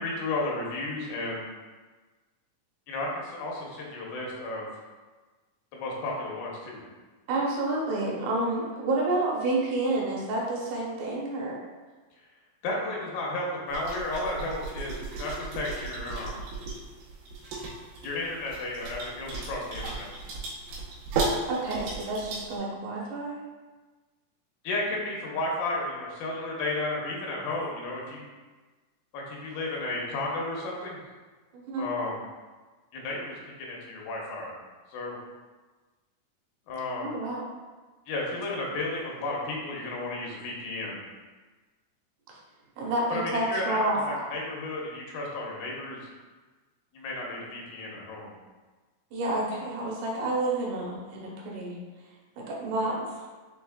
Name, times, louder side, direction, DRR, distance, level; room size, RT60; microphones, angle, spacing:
voice 1, 0.0-1.4 2.9-4.7 5.7-6.8 12.6-16.4 18.0-20.1 24.6-28.3 29.1-31.0 31.8-32.2 32.9-34.5 34.9-35.2 36.7-37.1 38.1-41.0 43.1-46.0 46.9-48.3, left 2 dB, 85° left, -2 dB, 2.6 m, -33 dB
voice 2, 7.3-11.6 21.4-23.4 31.5-31.9 37.0-37.4 42.3-42.4 42.8-44.2 49.1-51.8 52.4-53.1, right 2 dB, 75° right, -3 dB, 2.1 m, -29 dB
sound 1, 13.7-22.6, right 3 dB, 90° right, 2.9 m, -35 dB
6.6 x 3.4 x 2.3 m, 1.3 s
omnidirectional pair, 4.1 m